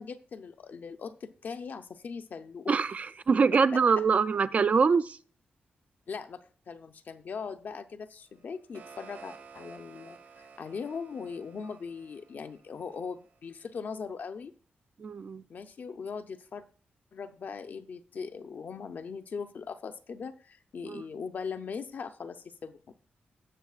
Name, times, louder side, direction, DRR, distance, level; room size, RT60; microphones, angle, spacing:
voice 1, 0.0-2.8 3.5-3.8 6.1-14.5 15.5-16.6 17.1-22.9, left 5 dB, 55° left, 9 dB, 0.6 m, -40 dB
voice 2, 2.7-5.2 15.0-15.4 20.8-21.0, right 5 dB, 40° right, 14 dB, 0.3 m, -24 dB
sound 1, 8.3-13.4, right 5 dB, 75° right, 1.5 m, -53 dB
17.5 x 6.6 x 2.4 m, 0.42 s
wide cardioid pair, 135°, 4 cm